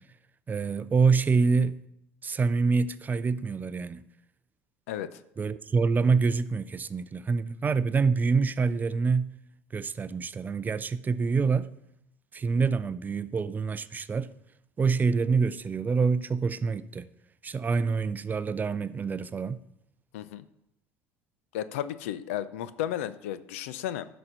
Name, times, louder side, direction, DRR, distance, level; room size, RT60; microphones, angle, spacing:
voice 1, 0.5-1.8 2.2-4.0 5.4-9.3 9.7-11.7 12.3-14.3 14.8-17.1 17.4-19.6, right 4 dB, 25° right, 0.5 m, -26 dB
voice 2, 4.9-5.2 20.1-20.4 21.5-24.1, left 11 dB, 80° left, 0.6 m, -33 dB
11.0 x 4.4 x 6.6 m
hypercardioid pair, 85°, 7 cm